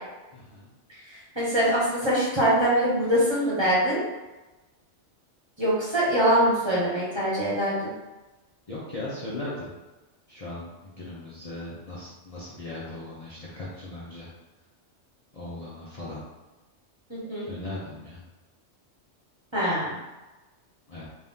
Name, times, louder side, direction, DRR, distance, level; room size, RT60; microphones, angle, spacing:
voice 1, 0.3-0.7 8.7-9.7 10.3-14.3 15.3-16.2 17.5-18.2 20.9-21.0, left 2 dB, 35° left, -8 dB, 0.8 m, -38 dB
voice 2, 1.1-4.0 5.6-7.9 17.1-17.5 19.5-20.0, equal, 25° right, -8 dB, 1.2 m, -23 dB
4.1 x 2.6 x 3.6 m, 1.1 s
omnidirectional pair, 1.2 m